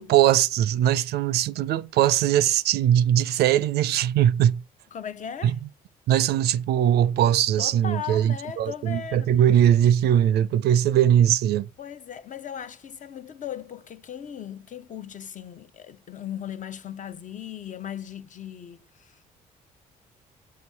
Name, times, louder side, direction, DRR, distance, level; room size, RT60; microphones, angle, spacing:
voice 1, 0.0-4.6 5.4-5.5 6.1-11.7, right 10 dB, 55° right, 0.4 m, -21 dB
voice 2, 4.9-5.6 7.6-9.3 11.8-19.3, left 9 dB, 40° left, 0.7 m, -37 dB
6.8 x 4.7 x 4.5 m
figure-of-eight pair, 45°, 19 cm